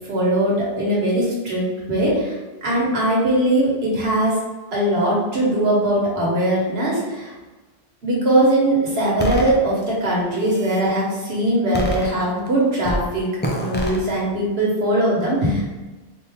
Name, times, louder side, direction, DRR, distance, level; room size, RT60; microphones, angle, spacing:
voice 1, 0.1-4.3 4.7-7.3 8.0-13.3 13.5-15.7, right 1 dB, 75° right, -4 dB, 1.5 m, -20 dB
sound 1, 9.2-9.5 10.2-10.9 11.7-12.5 12.8-13.1 13.4-14.0, equal, 15° left, 0.4 m, -26 dB
4.2 x 2.7 x 3.5 m, 1.2 s
omnidirectional pair, 1.1 m